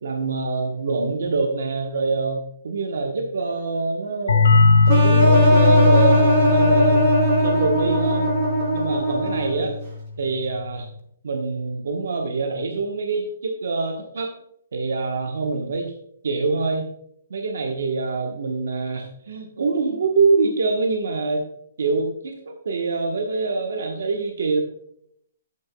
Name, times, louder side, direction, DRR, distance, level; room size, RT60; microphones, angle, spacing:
voice 1, 0.0-4.6 4.9-7.1 7.4-8.3 8.7-9.7 10.2-10.9 11.2-14.3 14.7-15.9 16.2-16.9 17.3-21.4 21.8-24.6, right 3 dB, 75° right, 3 dB, 1.1 m, -25 dB
sound 1, 4.3-9.7, left 3 dB, 85° left, 2.0 m, -19 dB
sound 2, 4.9-9.7, right 1 dB, 35° right, 3.6 m, -20 dB
10.5 x 8.7 x 2.3 m, 0.70 s
hypercardioid pair, 160°, 0 cm